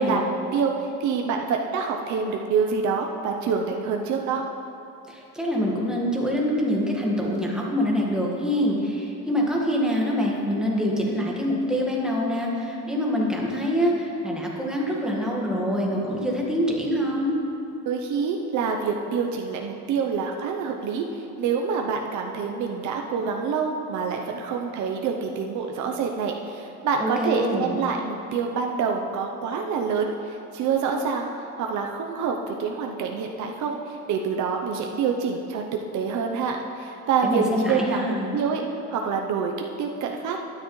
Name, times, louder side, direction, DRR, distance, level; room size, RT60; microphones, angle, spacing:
voice 1, 0.0-4.4 17.9-39.5 39.8-40.4, right 5 dB, 65° right, 2 dB, 0.7 m, -26 dB
voice 2, 5.1-17.4 27.0-27.8 37.2-38.4, equal, ahead, -3 dB, 1.6 m, -25 dB
12.5 x 9.8 x 3.1 m, 2.7 s
cardioid pair, 125°, 32 cm